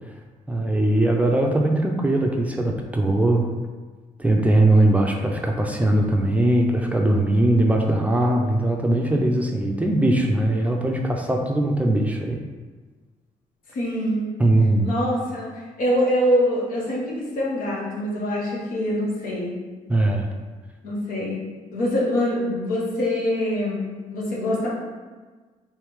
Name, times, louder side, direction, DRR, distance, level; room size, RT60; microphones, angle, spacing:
voice 1, 0.5-3.5 4.2-12.4 14.4-14.9 19.9-20.3, right 1 dB, 10° right, 1 dB, 0.4 m, -20 dB
voice 2, 13.7-14.3 14.8-15.5 15.8-19.6 20.8-21.4 21.7-24.7, equal, 85° left, -4 dB, 1.1 m, -24 dB
3.3 x 3.2 x 3.1 m, 1.4 s
cardioid pair, 95°, 14 cm